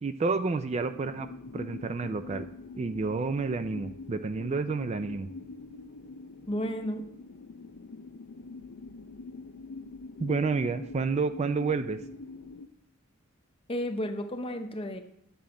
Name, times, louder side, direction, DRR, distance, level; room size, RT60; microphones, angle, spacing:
voice 1, 0.0-1.3 1.5-2.5 2.8-5.3 10.2-12.0, right 4 dB, 30° right, 10 dB, 0.3 m, -30 dB
sound 1, 0.9-12.7, left 3 dB, 75° left, 0.5 m, -44 dB
voice 2, 6.5-7.1 13.7-15.0, equal, 25° left, 7 dB, 0.7 m, -32 dB
10.5 x 7.1 x 3.8 m, 0.74 s
head